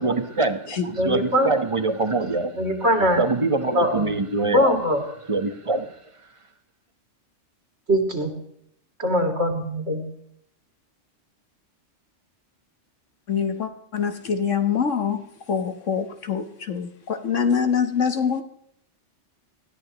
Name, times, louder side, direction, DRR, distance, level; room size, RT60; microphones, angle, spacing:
voice 1, 0.0-2.8 3.2-4.7 5.3-5.9, right 3 dB, 25° right, 8 dB, 1.3 m, -24 dB
voice 2, 1.0-1.5 2.5-3.2 3.7-4.1 4.4-5.0 7.9-8.3 9.0-10.0, equal, 60° right, 2 dB, 3.2 m, -22 dB
voice 3, 13.3-18.4, left 7 dB, 80° left, 8 dB, 1.7 m, -25 dB
20.5 x 13.5 x 3.1 m, 0.71 s
omnidirectional pair, 1.3 m